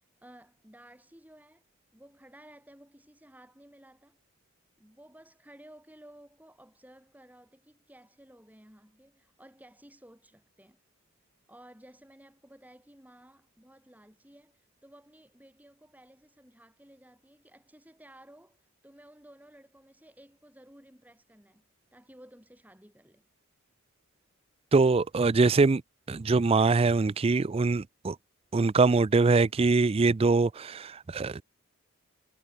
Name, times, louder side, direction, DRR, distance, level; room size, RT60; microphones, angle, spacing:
voice 1, 0.2-1.6 1.9-4.2 4.8-10.8 11.5-21.6 21.9-23.2, right 1 dB, 5° right, 4.9 m, -55 dB
voice 2, 24.7-25.8 26.1-28.2 28.5-31.4, right 3 dB, 25° right, 0.4 m, -23 dB
head